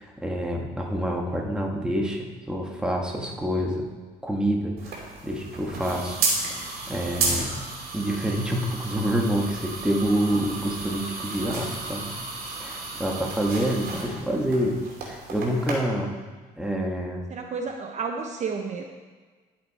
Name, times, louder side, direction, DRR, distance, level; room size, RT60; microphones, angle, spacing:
voice 1, 0.0-3.8 4.2-6.2 6.5-7.6 7.9-12.1 12.6-16.2 16.6-17.3, equal, 5° right, -1 dB, 1.6 m, -27 dB
sound 1, 4.8-15.7, right 3 dB, 65° right, 2.6 m, -32 dB
voice 2, 17.3-18.8, right 5 dB, 45° right, 3 dB, 0.9 m, -31 dB
11.0 x 7.8 x 4.2 m, 1.4 s
cardioid pair, 110°, 17 cm